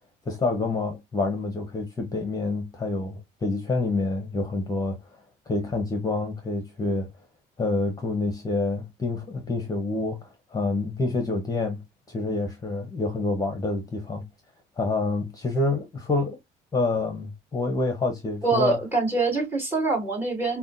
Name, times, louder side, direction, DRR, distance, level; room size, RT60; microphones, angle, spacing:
voice 1, 0.3-5.0 5.5-7.1 7.6-14.3 14.8-16.4 16.7-18.8, left 3 dB, 20° left, 0.9 m, -27 dB
voice 2, 18.4-20.6, right 3 dB, 10° right, 2.5 m, -24 dB
5.4 x 2.3 x 2.6 m
cardioid pair, 110°, 17 cm